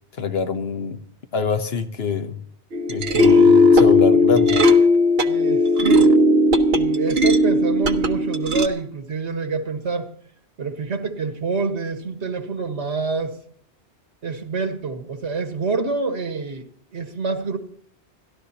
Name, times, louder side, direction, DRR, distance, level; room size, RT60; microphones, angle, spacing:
voice 1, 0.2-1.0 1.3-2.4 2.9-4.6, left 5 dB, 65° left, 8 dB, 1.2 m, -25 dB
sound 1, 2.7-8.7, left 2 dB, 65° right, 1.1 m, -16 dB
voice 2, 5.3-6.2 6.7-10.1 10.6-13.4 14.2-16.6 16.9-17.6, right 4 dB, 80° right, 4 dB, 1.8 m, -27 dB
29.5 x 12.0 x 2.9 m, 0.63 s
omnidirectional pair, 1.1 m